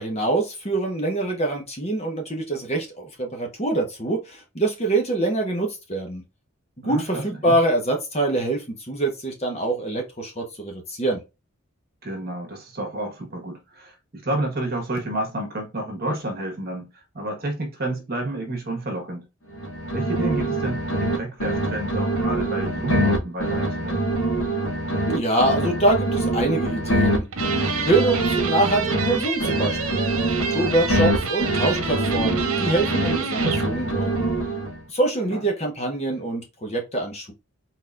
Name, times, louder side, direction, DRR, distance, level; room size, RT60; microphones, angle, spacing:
voice 1, 0.0-6.2 6.8-11.2 25.1-27.3 27.8-30.0 30.3-34.3 34.9-37.3, right 2 dB, 30° left, 1.2 m, -24 dB
voice 2, 6.8-7.5 12.0-19.2 19.9-24.1 33.3-33.6 35.3-35.4 36.1-36.2, right 1 dB, 45° right, 1.5 m, -30 dB
sound 1, 19.5-21.2 21.4-25.2 25.4-29.2 29.4-33.2 33.4-34.8, right 1 dB, 75° left, 2.3 m, -24 dB
sound 2, 27.3-33.7, right 5 dB, 75° right, 1.0 m, -29 dB
4.2 x 4.1 x 2.5 m
head